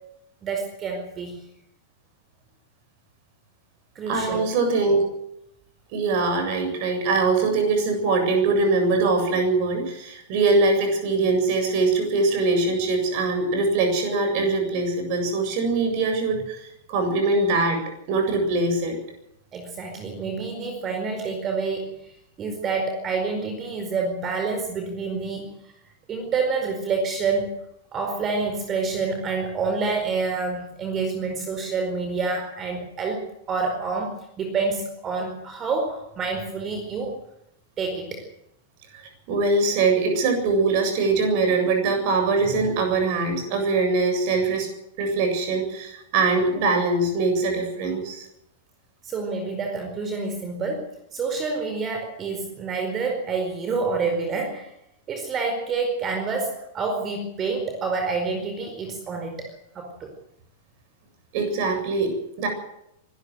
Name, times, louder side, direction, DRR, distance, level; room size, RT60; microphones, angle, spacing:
voice 1, 0.4-1.4 3.9-4.5 19.5-22.0 22.4-25.5 26.1-27.5 27.9-37.1 37.8-38.2 49.0-54.7 55.1-60.1, right 4 dB, 25° right, 4 dB, 4.7 m, -28 dB
voice 2, 4.1-5.0 5.9-17.8 18.1-19.0 38.9-44.7 45.0-48.3 61.3-62.5, right 3 dB, 45° right, 5 dB, 7.7 m, -22 dB
24.0 x 13.5 x 7.9 m, 0.82 s
figure-of-eight pair, 95°, 0 cm